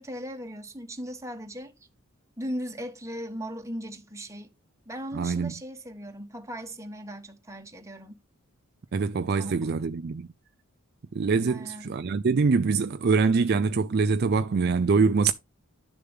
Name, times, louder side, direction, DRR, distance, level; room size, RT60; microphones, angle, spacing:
voice 1, 0.0-1.7 2.4-4.5 4.9-8.2 9.3-9.6 11.4-12.0, equal, 15° right, 1.3 m, -38 dB
voice 2, 5.1-5.5 8.9-10.3 11.1-15.3, right 4 dB, 45° right, 0.4 m, -24 dB
11.0 x 6.7 x 3.6 m
head